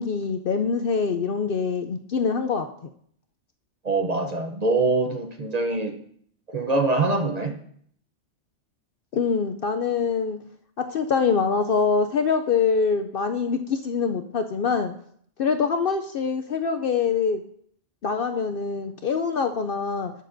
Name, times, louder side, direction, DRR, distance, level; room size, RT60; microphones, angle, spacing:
voice 1, 0.0-2.7 9.1-10.4 10.8-14.9 15.4-17.4 18.0-20.1, left 5 dB, 60° left, 6 dB, 0.6 m, -24 dB
voice 2, 3.8-6.0 6.5-7.5, right 3 dB, 40° right, 5 dB, 0.7 m, -24 dB
18.0 x 6.6 x 2.6 m, 0.64 s
omnidirectional pair, 1.3 m